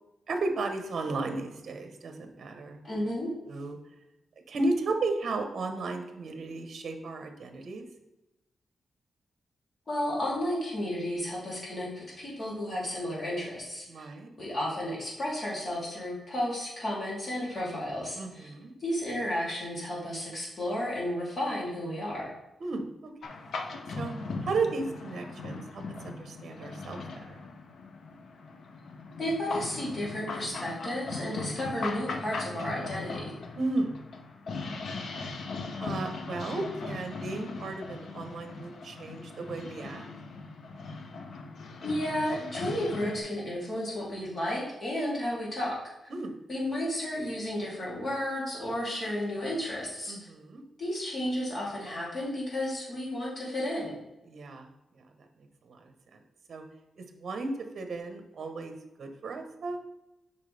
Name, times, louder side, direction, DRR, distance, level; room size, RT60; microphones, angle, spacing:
voice 1, 0.3-2.8 3.5-3.8 4.5-7.8 13.9-14.3 18.2-18.7 22.6-23.1 23.4-23.5 24.0-24.1 24.4-27.0 27.3-27.4 31.6-31.8 33.6-34.0 35.8-40.1 46.1-46.3 50.1-50.6 54.3-54.7 54.9-55.0 55.6-56.2 56.5-56.6 57.0-59.8, right 3 dB, 55° right, 6 dB, 1.0 m, -34 dB
voice 2, 2.8-3.3 9.9-14.1 14.4-18.5 18.8-22.3 29.2-33.3 41.8-45.9 46.5-50.2 50.8-54.0, left 1 dB, 35° left, -5 dB, 2.9 m, -32 dB
sound 1, 23.2-43.2, left 3 dB, 70° left, 0.8 m, -39 dB
8.2 x 5.7 x 3.4 m, 0.94 s
wide cardioid pair, 135°, 0 cm